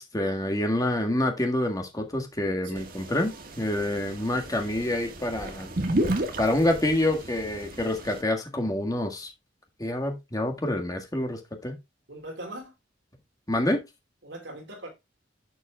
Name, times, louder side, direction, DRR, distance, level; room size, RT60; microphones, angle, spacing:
voice 1, 0.0-5.7 6.4-9.3 9.8-11.7 13.5-13.8, left 1 dB, 20° left, 1.7 m, -27 dB
sound 1, 2.8-8.2, right 1 dB, 50° right, 1.6 m, -33 dB
voice 2, 12.1-12.7 14.2-14.9, right 1 dB, 65° right, 3.3 m, -40 dB
11.0 x 7.5 x 2.3 m
head